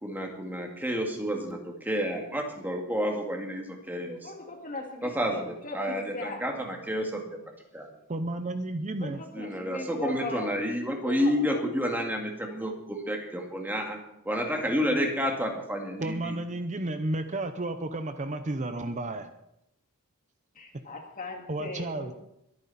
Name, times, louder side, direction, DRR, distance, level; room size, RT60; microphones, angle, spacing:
voice 1, 0.0-4.3 5.0-7.4 7.7-7.9 9.3-14.0 14.2-16.4, equal, 10° right, 2 dB, 2.0 m, -30 dB
voice 2, 4.2-6.4 9.0-10.7 11.0-11.6 20.6-22.1, left 3 dB, 40° left, 2 dB, 2.3 m, -39 dB
voice 3, 8.1-9.2 16.0-19.3 21.5-22.1, right 2 dB, 35° right, 9 dB, 0.7 m, -32 dB
22.0 x 9.3 x 4.2 m, 0.81 s
head